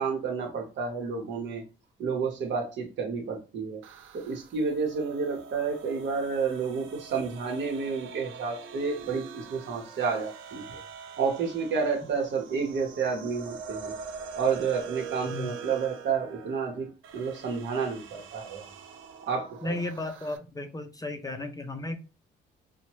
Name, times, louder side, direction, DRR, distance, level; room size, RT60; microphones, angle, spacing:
voice 1, 0.0-1.6 2.0-3.8 4.1-10.8 11.2-14.0 14.4-18.6 19.3-19.8, right 5 dB, 65° right, 0.9 m, -30 dB
sound 1, 3.8-20.4, right 6 dB, 85° right, 0.5 m, -44 dB
voice 2, 19.6-22.0, left 2 dB, 20° left, 0.4 m, -34 dB
2.9 x 2.1 x 2.9 m
cardioid pair, 90°, 20 cm